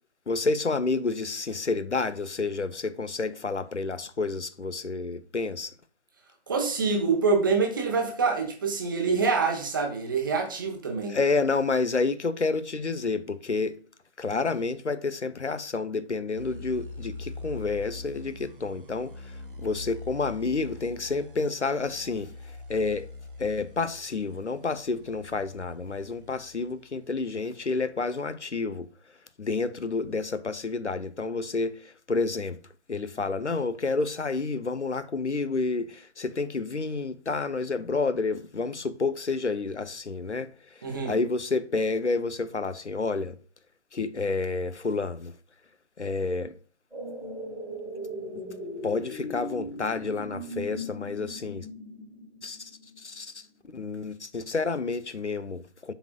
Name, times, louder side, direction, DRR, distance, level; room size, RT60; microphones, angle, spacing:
voice 1, 0.3-5.7 11.1-13.8 14.2-22.3 22.7-23.1 23.4-28.9 29.4-32.6 32.9-43.3 43.9-45.3 46.0-46.5 48.8-51.7 52.4-52.7 53.0-53.5 53.7-55.9, left 3 dB, 80° left, 0.8 m, -29 dB
voice 2, 6.5-11.2 40.8-41.2, right 4 dB, 20° right, 1.0 m, -26 dB
sound 1, 16.4-26.9, left 3 dB, 50° right, 0.9 m, -43 dB
sound 2, 46.9-53.0 53.4-53.5, equal, ahead, 1.7 m, -38 dB
11.0 x 4.3 x 2.3 m
figure-of-eight pair, 150°, 34 cm